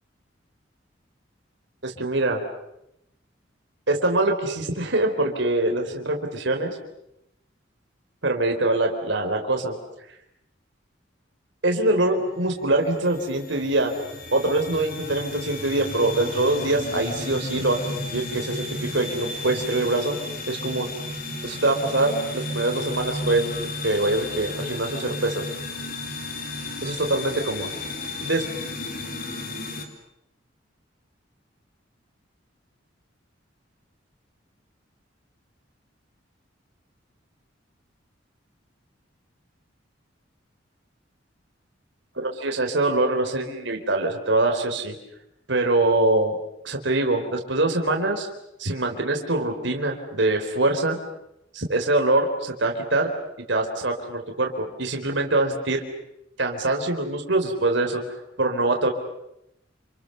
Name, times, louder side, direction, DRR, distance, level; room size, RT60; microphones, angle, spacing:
voice 1, 1.8-2.4 3.9-6.8 8.2-9.8 11.6-13.9 14.3-20.2 20.5-20.9 21.4-25.4 26.8-27.7 28.2-28.5 42.2-45.0 45.5-46.4 46.6-48.3 48.6-51.0 51.5-53.1 53.5-55.8 56.4-58.0 58.4-58.9, right 2 dB, 70° right, 3 dB, 4.0 m, -24 dB
sound 1, 11.9-29.9, left 2 dB, 50° left, 4.1 m, -33 dB
29.5 x 28.5 x 6.7 m, 0.83 s
head